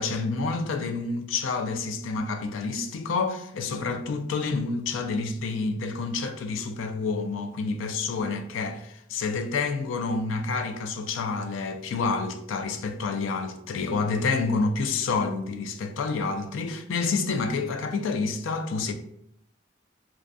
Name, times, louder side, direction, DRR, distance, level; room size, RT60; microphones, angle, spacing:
voice 1, 0.0-18.9, left 4 dB, 75° left, 0.3 m, -28 dB
2.4 x 2.3 x 2.4 m
head